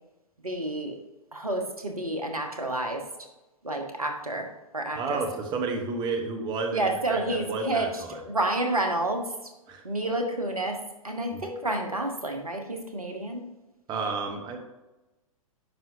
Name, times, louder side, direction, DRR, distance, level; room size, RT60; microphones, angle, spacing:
voice 1, 0.4-1.0 1.3-3.0 3.6-4.5 4.7-5.2 6.7-9.2 9.8-10.8 11.0-13.4, right 2 dB, 85° right, 4 dB, 1.2 m, -29 dB
voice 2, 4.9-8.2 9.7-9.8 11.3-11.4 13.9-14.6, right 4 dB, 25° right, 3 dB, 1.1 m, -31 dB
9.9 x 5.8 x 2.8 m, 1.0 s
figure-of-eight pair, 105°, 18 cm